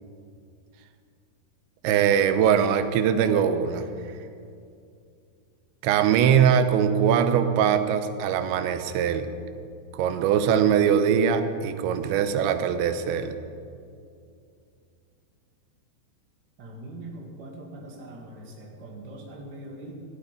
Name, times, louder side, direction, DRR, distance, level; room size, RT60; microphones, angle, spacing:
voice 1, 1.8-3.9 5.8-9.3 9.9-13.4, right 8 dB, 85° right, 9 dB, 3.2 m, -22 dB
voice 2, 16.6-19.9, right 1 dB, 40° right, -1 dB, 1.8 m, -42 dB
16.5 x 14.0 x 5.1 m, 2.4 s
omnidirectional pair, 5.1 m